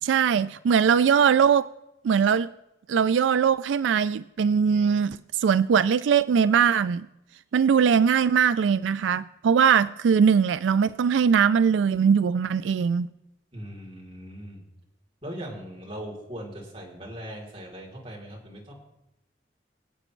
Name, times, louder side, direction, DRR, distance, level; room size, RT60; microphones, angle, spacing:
voice 1, 0.0-1.7 2.0-2.5 2.9-7.1 7.5-13.1, right 7 dB, 90° right, 0.3 m, -21 dB
voice 2, 13.5-14.6 15.2-18.7, equal, 30° right, 3.2 m, -39 dB
24.5 x 8.6 x 3.2 m
head